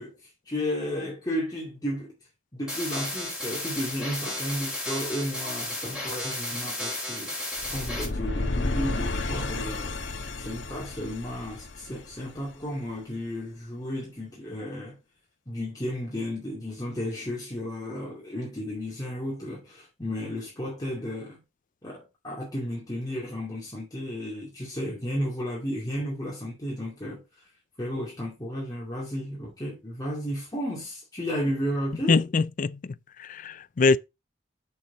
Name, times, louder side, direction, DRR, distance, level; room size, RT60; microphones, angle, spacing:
voice 1, 0.0-2.1 2.5-10.0 10.4-15.0 15.5-21.4 21.8-27.2 27.8-32.2, equal, 20° left, 2.3 m, -33 dB
sound 1, 2.7-8.1, left 1 dB, 5° right, 4.4 m, -33 dB
sound 2, 7.6-12.6, left 2 dB, 70° left, 1.5 m, -32 dB
voice 2, 32.1-34.0, left 4 dB, 45° left, 0.4 m, -24 dB
7.0 x 6.3 x 4.0 m
head